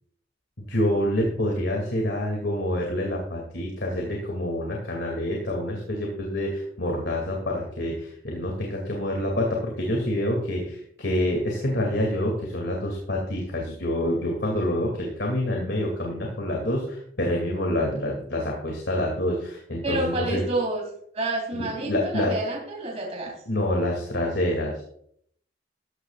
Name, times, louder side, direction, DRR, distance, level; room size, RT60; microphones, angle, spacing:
voice 1, 0.6-20.4 21.6-22.3 23.5-24.8, left 1 dB, 80° left, 0 dB, 2.5 m, -27 dB
voice 2, 19.8-20.9 21.1-23.3, right 2 dB, 35° right, 0 dB, 2.9 m, -29 dB
13.5 x 13.0 x 2.4 m, 0.67 s
head